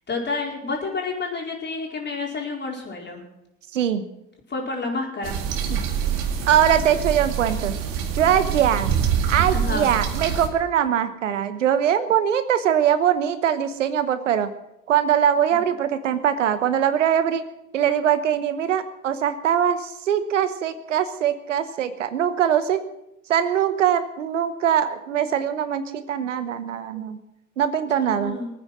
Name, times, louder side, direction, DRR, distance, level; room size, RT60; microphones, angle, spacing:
voice 1, 0.0-3.2 4.5-5.4 9.5-9.9 15.5-15.6 28.0-28.5, left 3 dB, 30° left, 0 dB, 4.6 m, -29 dB
voice 2, 3.7-4.0 5.7-5.8 6.5-7.8 8.1-8.9 9.3-14.5 14.9-17.4 17.7-22.8 23.3-27.2 27.6-28.3, right 9 dB, 80° right, 12 dB, 1.0 m, -22 dB
sound 1, 5.2-10.5, right 8 dB, 60° right, 2.1 m, -25 dB
21.0 x 9.4 x 6.1 m, 0.84 s
hypercardioid pair, 65°, 37 cm